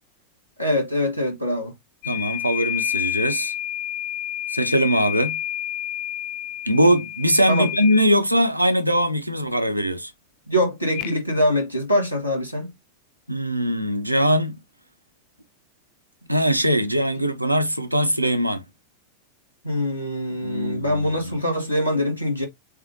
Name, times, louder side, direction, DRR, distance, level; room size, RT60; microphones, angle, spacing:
voice 1, 0.6-1.7 7.5-7.7 10.5-12.8 17.2-17.3 19.6-22.5, left 1 dB, 90° left, 1.7 m, -23 dB
sound 1, 2.0-8.1 10.9-11.1, left 12 dB, 45° left, 0.3 m, -29 dB
voice 2, 2.1-3.5 4.5-5.4 6.6-10.1 13.3-14.6 16.3-18.6 20.4-21.4, equal, 90° right, 0.6 m, -21 dB
6.6 x 2.7 x 2.8 m
figure-of-eight pair, 90°, 0 cm